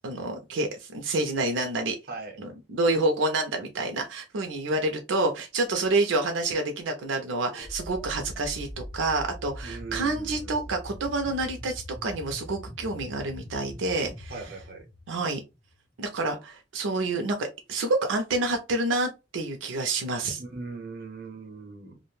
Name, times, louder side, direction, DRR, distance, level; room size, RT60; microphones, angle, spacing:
voice 1, 0.0-2.0 2.4-14.3 15.1-15.4 16.0-20.4, right 2 dB, 90° right, 0.5 m, -28 dB
voice 2, 2.1-2.4 9.6-10.7 14.3-14.9 20.4-22.0, right 4 dB, 55° right, 0.8 m, -40 dB
sound 1, 6.4-15.8, equal, 15° right, 1.1 m, -43 dB
2.5 x 2.1 x 3.0 m
head